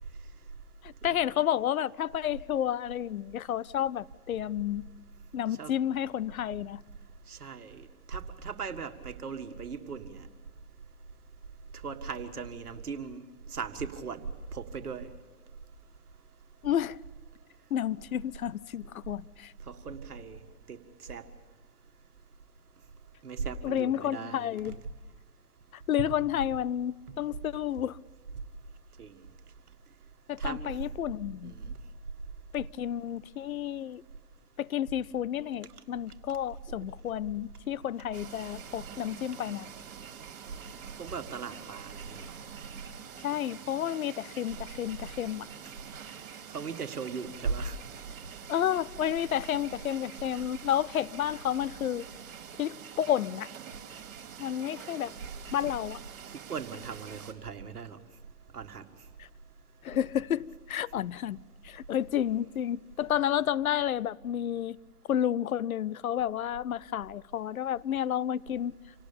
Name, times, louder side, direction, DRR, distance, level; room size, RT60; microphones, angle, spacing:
voice 1, 0.8-4.9 5.3-6.8 16.6-17.0 17.7-19.5 23.6-24.8 25.9-28.0 30.3-31.5 32.5-34.0 34.6-39.7 43.2-45.5 48.5-52.1 52.6-53.5 54.4-55.1 55.5-56.0 59.2-59.3 59.8-64.8 65.1-68.7, left 10 dB, 65° left, 0.6 m, -31 dB
voice 2, 7.3-7.8 8.1-10.2 11.8-13.2 13.5-14.2 14.5-15.1 19.7-20.4 20.7-20.8 21.1-21.2 23.2-24.8 29.0-29.1 30.4-30.7 31.4-31.7 41.0-42.2 46.5-47.8 56.5-58.0 58.5-58.8, right 5 dB, 75° right, 1.8 m, -38 dB
sound 1, 38.1-57.3, right 8 dB, 55° right, 2.9 m, -46 dB
27.0 x 18.5 x 6.9 m
figure-of-eight pair, 120°, 46 cm